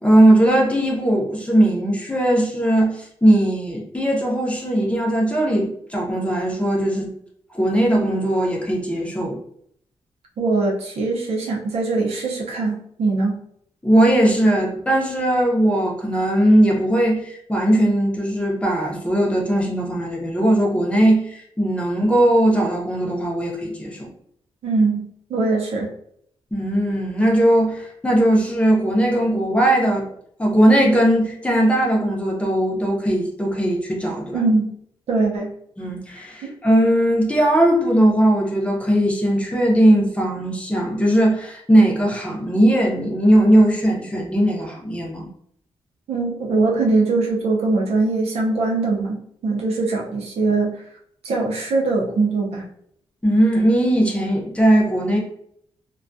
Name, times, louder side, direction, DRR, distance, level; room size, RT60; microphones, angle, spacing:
voice 1, 0.0-7.1 7.5-9.4 13.8-24.1 26.5-30.1 30.4-34.4 35.8-45.3 53.2-55.2, right 1 dB, 10° left, -2 dB, 0.7 m, -18 dB
voice 2, 10.4-13.4 24.6-25.9 34.3-34.7 35.1-35.5 36.4-36.5 46.1-50.8 51.2-52.6, right 3 dB, 85° right, -1 dB, 0.6 m, -21 dB
2.2 x 2.2 x 2.6 m, 0.68 s
cardioid pair, 105°, 10 cm